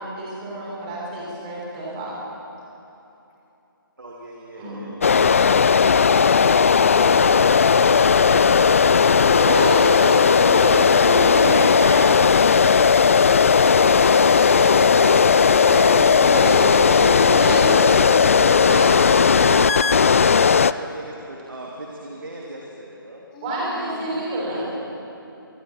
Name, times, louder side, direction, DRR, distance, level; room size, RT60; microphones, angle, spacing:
voice 1, 0.0-2.3 4.6-5.3 9.3-12.2 15.5-18.0 18.5-18.8 19.2-19.8 23.4-24.7, right 1 dB, 20° right, -5 dB, 6.3 m, -27 dB
voice 2, 4.0-5.2 19.7-23.2, right 1 dB, 60° right, -2 dB, 2.9 m, -38 dB
sound 1, 5.0-20.7, left 6 dB, 35° left, 0.4 m, -16 dB
voice 3, 11.9-16.9 23.3-25.0, left 1 dB, 20° left, -4 dB, 4.6 m, -36 dB
26.0 x 23.5 x 4.5 m, 3.0 s
figure-of-eight pair, 150°, 12 cm